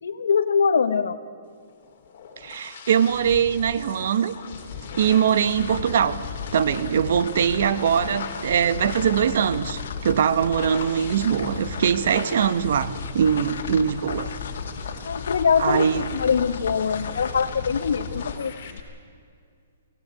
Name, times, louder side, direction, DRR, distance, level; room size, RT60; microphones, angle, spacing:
voice 1, 0.0-1.2 15.0-15.9 16.1-18.8, left 6 dB, 85° left, 1.2 m, -23 dB
sound 1, 1.8-18.8, left 5 dB, 45° left, 3.5 m, -36 dB
voice 2, 2.4-4.3 5.0-6.2 6.5-14.3 15.6-16.0, right 8 dB, 60° right, 1.0 m, -22 dB
sound 2, 4.8-18.5, left 6 dB, 70° left, 2.2 m, -38 dB
23.0 x 17.5 x 9.0 m
hypercardioid pair, 160°, 0 cm